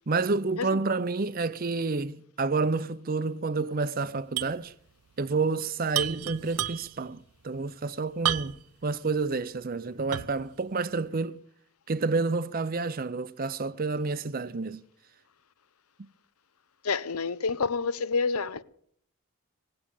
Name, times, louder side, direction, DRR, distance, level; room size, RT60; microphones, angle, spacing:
voice 1, 0.1-4.7 5.2-11.4 11.9-14.8, right 3 dB, 40° right, 0.6 m, -29 dB
sound 1, 4.4-4.6 4.9-5.0 5.9-7.1 8.2-8.8 9.3-9.4 10.1-10.5, right 11 dB, 85° right, 0.7 m, -31 dB
voice 2, 16.8-18.6, left 4 dB, 80° left, 0.7 m, -28 dB
19.0 x 8.6 x 8.8 m
head